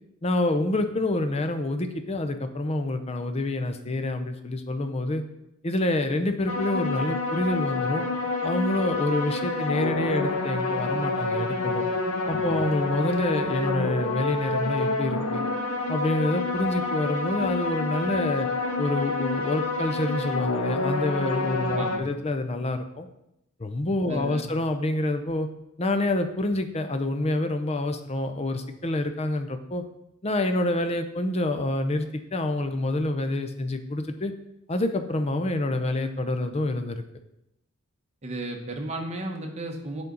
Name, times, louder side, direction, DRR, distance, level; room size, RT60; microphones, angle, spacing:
voice 1, 0.2-5.2 5.6-8.0 8.4-11.8 12.3-15.4 15.9-18.5 18.8-23.1 23.6-25.5 25.8-29.8 30.2-34.3 34.7-37.0, left 2 dB, 30° left, 7 dB, 0.6 m, -27 dB
sound 1, 6.5-22.0, left 3 dB, 90° left, 0.8 m, -28 dB
voice 2, 12.3-12.6 21.7-22.0 24.1-24.5 38.2-40.0, right 2 dB, 30° right, 2 dB, 1.0 m, -34 dB
8.4 x 5.3 x 3.9 m, 0.83 s
head